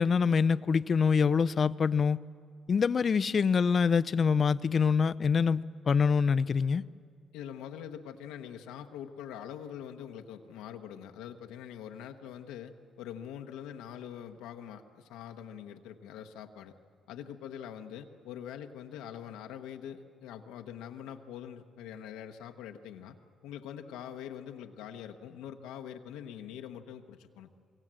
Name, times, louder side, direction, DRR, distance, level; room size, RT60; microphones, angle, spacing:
voice 1, 0.0-2.2 2.7-6.8, left 6 dB, 45° left, 15 dB, 0.6 m, -25 dB
voice 2, 7.3-16.7 17.1-23.2 23.4-27.5, left 9 dB, 90° left, 5 dB, 1.1 m, -44 dB
25.0 x 22.5 x 7.6 m, 2.1 s
supercardioid pair, 70°, 0 cm